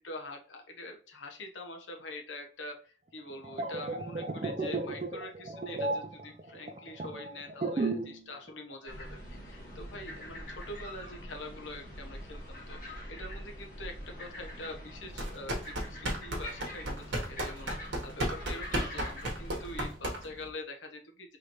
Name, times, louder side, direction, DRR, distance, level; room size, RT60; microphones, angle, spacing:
voice 1, 0.0-9.2 9.4-21.4, left 1 dB, 90° left, 4 dB, 0.9 m, -45 dB
sound 1, 3.3-8.2 8.5-8.7, right 2 dB, 35° right, 0.4 m, -34 dB
sound 2, 8.9-19.9, equal, 45° left, 1.6 m, -44 dB
sound 3, 15.1-20.5, right 1 dB, 85° right, 1.4 m, -34 dB
4.8 x 3.2 x 3.0 m, 0.41 s
head